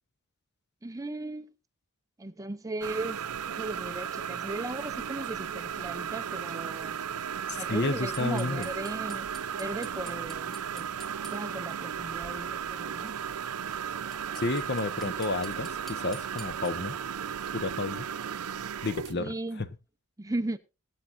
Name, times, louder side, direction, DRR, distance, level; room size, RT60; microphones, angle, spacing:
voice 1, 0.8-1.5 2.2-7.0 7.5-9.3 9.5-10.9 11.2-13.2 19.2-19.6 20.2-20.6, right 2 dB, 15° right, 0.7 m, -37 dB
sound 1, 2.8-19.1, right 8 dB, 85° right, 0.6 m, -35 dB
voice 2, 7.7-8.7 14.4-16.9 17.5-18.1 18.8-19.7, left 3 dB, 50° left, 1.0 m, -31 dB
sound 2, 8.1-11.4 13.7-13.8 14.1-16.7, right 3 dB, ahead, 2.1 m, -46 dB
22.0 x 9.1 x 2.6 m
head